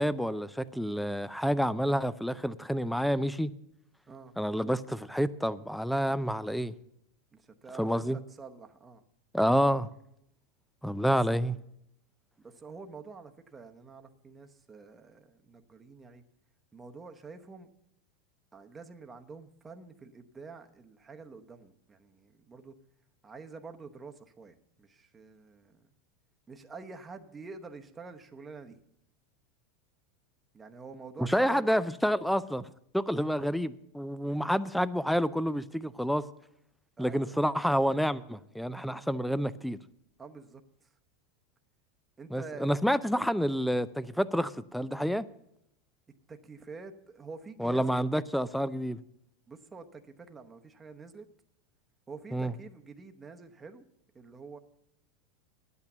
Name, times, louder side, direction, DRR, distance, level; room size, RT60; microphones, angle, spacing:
voice 1, 0.0-3.5 4.4-6.7 7.8-8.2 9.3-9.9 10.8-11.6 31.2-36.2 37.0-39.8 42.3-45.3 47.6-49.0 52.3-52.5, equal, ahead, 16 dB, 0.5 m, -28 dB
voice 2, 7.3-9.0 12.4-16.2 16.7-17.7 18.5-22.7 23.2-25.8 26.5-28.8 30.5-31.7 33.4-33.5 34.3-34.5 37.0-37.4 40.2-40.9 42.2-42.7 46.3-47.9 49.5-51.3 52.1-53.8 54.1-54.6, right 4 dB, 20° right, 6 dB, 0.9 m, -47 dB
10.5 x 8.5 x 6.8 m, 0.76 s
supercardioid pair, 115°, 0 cm